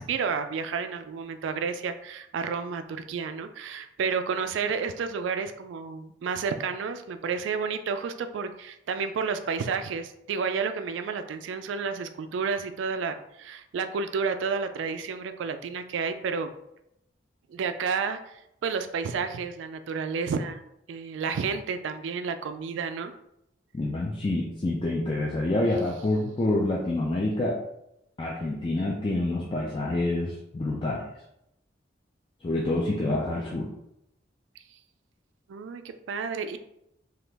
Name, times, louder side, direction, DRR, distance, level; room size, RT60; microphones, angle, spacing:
voice 1, 0.0-16.5 17.5-20.6 20.9-23.1 35.5-36.6, right 5 dB, 80° right, 9 dB, 0.3 m, -31 dB
voice 2, 23.7-27.6 28.2-31.1 32.4-33.7, left 2 dB, 25° left, -3 dB, 0.3 m, -27 dB
2.9 x 2.4 x 3.3 m, 0.81 s
head